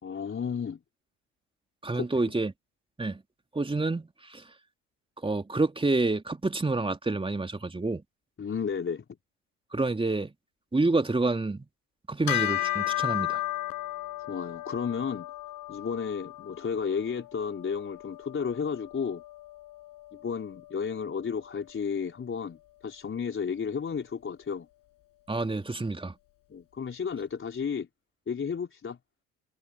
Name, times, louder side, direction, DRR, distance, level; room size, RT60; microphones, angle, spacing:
voice 1, 0.0-0.8 1.9-2.1 8.4-9.0 14.2-15.3 15.7-19.2 20.1-24.7 26.5-27.9 28.3-29.0, left 6 dB, 30° left, 4.4 m, -32 dB
voice 2, 1.8-2.5 3.0-3.2 3.5-4.4 5.2-8.0 9.7-10.3 10.7-11.7 12.1-13.4 25.3-26.1, right 3 dB, 15° right, 3.4 m, -28 dB
Bell, 12.3-22.0, left 16 dB, 55° left, 7.1 m, -35 dB
hypercardioid pair, 60°, 39 cm